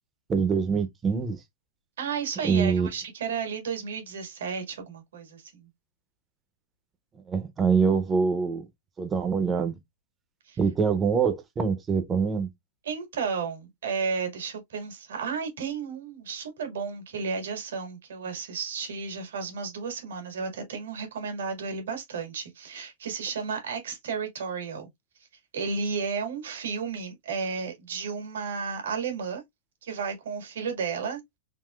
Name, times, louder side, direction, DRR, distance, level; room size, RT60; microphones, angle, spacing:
voice 1, 0.3-1.4 2.4-2.9 7.3-8.7 9.0-9.7 10.6-12.5, right 5 dB, 10° right, 0.4 m, -24 dB
voice 2, 2.0-5.7 10.5-10.6 12.8-24.9 25.5-29.4 29.8-31.4, right 5 dB, 85° right, 1.6 m, -33 dB
3.6 x 2.7 x 2.2 m
supercardioid pair, 180°, 0 cm